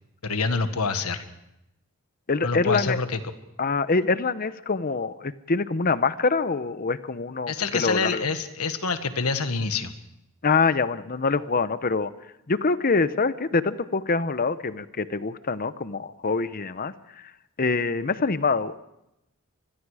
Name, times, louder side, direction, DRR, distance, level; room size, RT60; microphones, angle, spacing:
voice 1, 0.2-1.2 2.4-3.2 7.5-9.9, left 4 dB, 85° left, 9 dB, 1.6 m, -26 dB
voice 2, 2.3-3.0 3.6-8.2 10.4-12.1 12.5-16.9 17.6-18.8, left 4 dB, 40° left, 14 dB, 0.8 m, -25 dB
25.0 x 21.5 x 4.9 m, 0.86 s
head